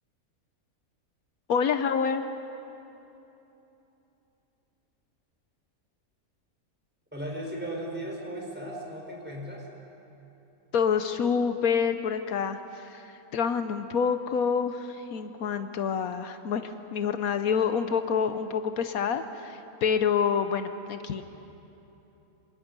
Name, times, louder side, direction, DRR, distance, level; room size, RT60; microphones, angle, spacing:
voice 1, 1.5-2.3 10.7-13.1 13.3-21.2, left 6 dB, 80° left, 9 dB, 1.3 m, -27 dB
voice 2, 7.1-9.7, right 1 dB, 5° right, -2 dB, 4.8 m, -36 dB
27.0 x 26.5 x 5.4 m, 3.0 s
omnidirectional pair, 1.5 m